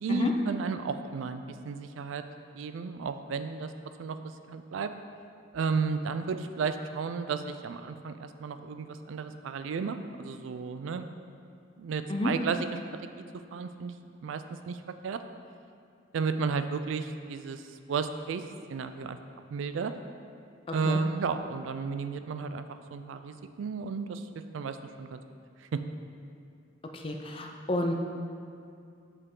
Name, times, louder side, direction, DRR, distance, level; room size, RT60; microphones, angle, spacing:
voice 1, 0.0-2.2 2.5-3.7 4.0-4.2 4.5-4.9 5.5-11.0 11.8-12.8 13.5-13.9 14.2-15.2 16.1-17.6 17.9-18.4 18.7-19.2 19.5-19.9 20.7-24.2 24.5-25.2 25.7-25.8, right 5 dB, 75° right, 9 dB, 0.3 m, -33 dB
voice 2, 26.9-27.9, left 1 dB, 25° left, 3 dB, 0.4 m, -30 dB
6.1 x 5.3 x 3.7 m, 2.4 s
head